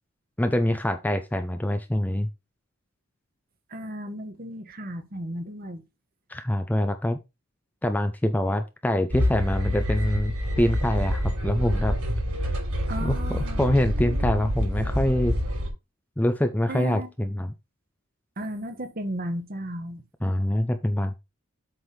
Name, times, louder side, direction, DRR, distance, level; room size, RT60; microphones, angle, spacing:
voice 1, 0.4-2.3 6.3-7.2 7.8-11.9 13.0-15.3 16.2-17.5 20.2-21.2, left 1 dB, 5° left, 0.5 m, -25 dB
voice 2, 3.7-5.8 12.9-13.6 16.7-17.1 18.4-20.0, right 1 dB, 40° right, 1.3 m, -34 dB
sound 1, 9.1-15.7, equal, 90° right, 4.4 m, -27 dB
8.0 x 3.5 x 5.8 m
head